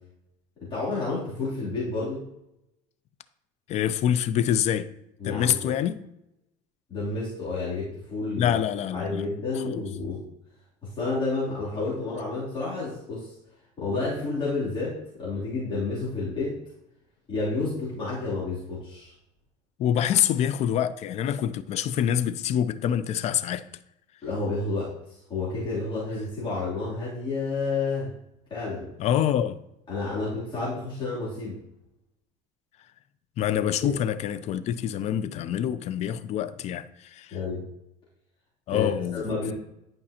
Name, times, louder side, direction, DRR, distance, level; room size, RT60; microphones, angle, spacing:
voice 1, 0.7-2.2 5.2-5.7 6.9-8.6 8.9-10.2 10.8-13.3 13.8-16.6 17.3-19.1 24.2-28.1 28.5-28.9 29.9-31.6 33.8-34.0 37.3-37.6 38.7-39.5, left 3 dB, 35° left, 3.1 m, -30 dB
voice 2, 3.7-4.9 5.2-6.0 8.4-9.2 9.6-9.8 19.8-23.6 29.0-29.6 33.4-37.4 38.7-39.5, left 10 dB, 50° left, 0.5 m, -26 dB
11.0 x 5.3 x 2.9 m
cardioid pair, 135°, 14 cm